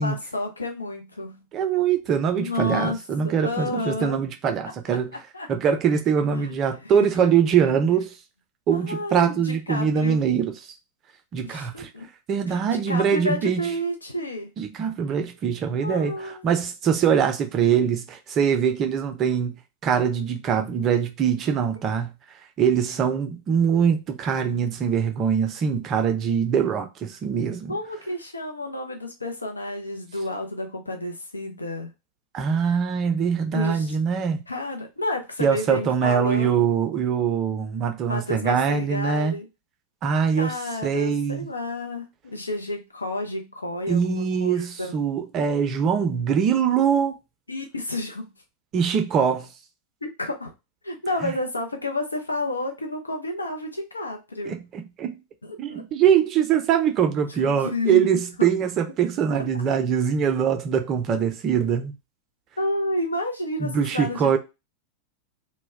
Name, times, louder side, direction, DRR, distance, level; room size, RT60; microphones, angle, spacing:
voice 1, 0.0-1.4 2.4-3.0 3.2-4.2 4.9-5.5 6.3-7.1 8.7-10.2 11.4-12.1 12.5-14.5 15.8-16.4 27.7-31.9 33.5-34.0 34.5-36.6 38.1-39.5 40.4-44.9 47.5-48.3 50.0-50.5 50.8-54.5 55.4-55.8 57.4-58.2 62.6-64.4, left 1 dB, 80° left, 0.5 m, -30 dB
voice 2, 1.5-5.2 5.5-8.1 8.7-10.5 11.3-11.9 12.3-13.7 14.6-19.5 19.8-22.1 22.6-27.7 32.3-34.4 35.4-39.4 40.0-40.5 40.8-41.5 43.9-47.2 48.7-49.5 51.2-51.3 54.4-55.2 55.6-61.9 63.6-64.4, right 7 dB, 30° right, 0.5 m, -23 dB
2.2 x 2.1 x 3.4 m
figure-of-eight pair, 90°, 0 cm